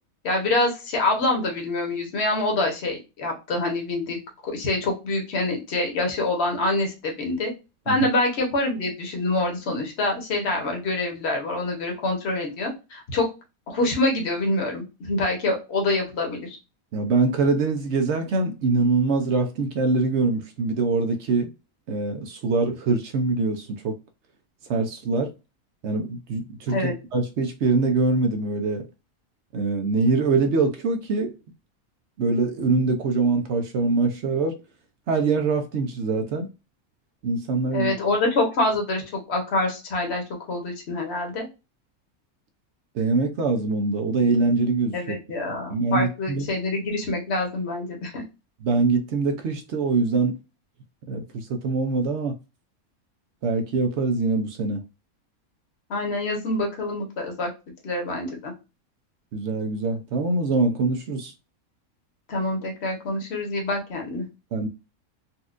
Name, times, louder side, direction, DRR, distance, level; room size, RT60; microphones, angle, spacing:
voice 1, 0.2-4.2 4.4-7.5 7.9-13.3 13.7-16.6 26.7-26.9 37.7-41.5 44.9-48.2 55.9-57.5 57.8-58.5 62.3-64.3, left 2 dB, 50° left, 1.2 m, -26 dB
voice 2, 16.9-21.5 21.9-24.0 24.7-25.3 25.8-28.9 29.5-31.4 32.2-34.6 35.1-36.5 37.2-37.9 42.9-45.0 45.7-46.4 48.6-50.3 51.1-52.4 53.4-54.8 59.3-61.3 64.5-64.7, right 3 dB, 65° right, 0.8 m, -23 dB
4.2 x 2.3 x 2.4 m
omnidirectional pair, 1.5 m